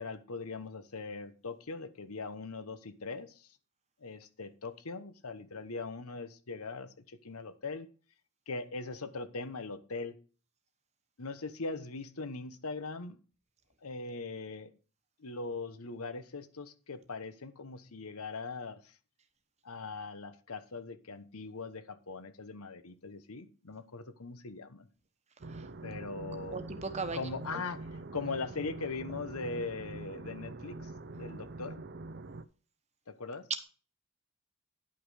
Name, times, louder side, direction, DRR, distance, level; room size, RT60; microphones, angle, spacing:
voice 1, 0.0-3.6 4.0-7.9 8.5-10.2 11.2-13.2 13.8-14.7 15.2-19.0 19.6-24.9 25.8-26.6 27.1-31.8 33.1-33.5, left 3 dB, 85° left, 1.1 m, -40 dB
sound 1, 25.4-32.4, right 2 dB, 50° right, 0.5 m, -44 dB
voice 2, 26.5-27.6, right 3 dB, 30° right, 1.1 m, -39 dB
10.5 x 5.8 x 4.8 m
head